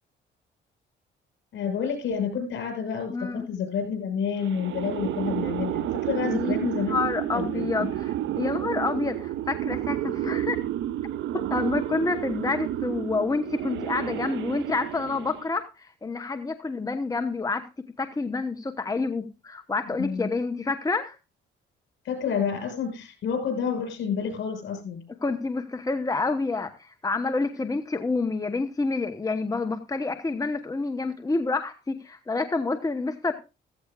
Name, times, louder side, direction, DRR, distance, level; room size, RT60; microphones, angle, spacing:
voice 1, 1.5-7.0 7.3-7.6 20.0-20.3 22.0-25.0, left 6 dB, 70° left, 5 dB, 5.9 m, -29 dB
voice 2, 3.1-3.5 6.1-10.6 11.3-17.7 18.0-21.1 25.2-33.3, left 3 dB, 15° left, 7 dB, 1.0 m, -28 dB
sound 1, 4.4-15.6, right 13 dB, 75° right, 0.6 m, -30 dB
15.0 x 14.5 x 2.4 m, 0.28 s
cardioid pair, 90°, 20 cm